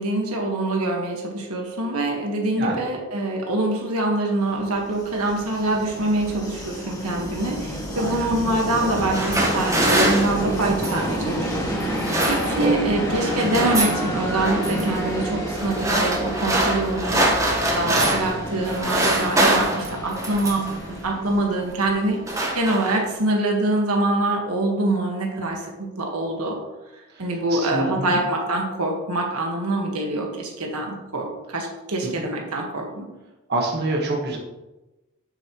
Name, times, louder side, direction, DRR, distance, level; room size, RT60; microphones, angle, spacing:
voice 1, 0.0-11.6 11.9-22.2 22.5-26.6 27.2-33.1, right 2 dB, 75° right, 1 dB, 1.6 m, -25 dB
Train, 4.7-22.4, equal, 15° left, 2.0 m, -29 dB
voice 2, 8.0-8.3 12.6-12.7 17.9-18.1 27.1-27.2 27.5-28.2 32.0-32.2 33.5-34.4, right 2 dB, 50° right, -1 dB, 1.4 m, -26 dB
sound 1, 8.9-11.1 11.8-12.8 13.1-14.0 14.4-14.8 15.5-18.4 18.6-20.7 21.5-21.7 22.0-23.1, right 1 dB, 15° right, 1.3 m, -24 dB
8.9 x 7.3 x 3.1 m, 1.0 s
head